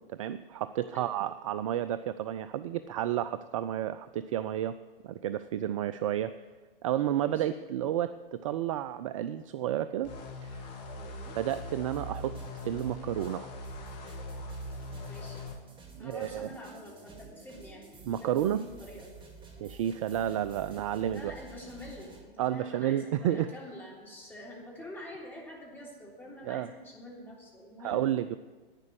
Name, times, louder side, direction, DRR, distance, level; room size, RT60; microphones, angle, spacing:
voice 1, 0.1-4.8 5.0-6.3 6.8-10.1 10.4-10.6 11.4-12.4 12.6-13.5 15.9-16.5 18.1-18.6 19.6-21.3 22.4-23.5 26.4-26.7 27.8-28.4, right 11 dB, 35° right, 13 dB, 0.4 m, -31 dB
voice 2, 7.2-7.6 10.9-11.4 15.1-15.4 16.0-17.9 18.2-19.1 21.1-28.0, left 1 dB, 5° left, -4 dB, 3.4 m, -46 dB
sound 1, 10.0-15.6, left 1 dB, 45° left, 1.7 m, -41 dB
sound 2, 11.3-22.2, right 4 dB, 15° right, 1.9 m, -52 dB
11.5 x 9.4 x 7.7 m, 1.4 s
figure-of-eight pair, 105°, 29 cm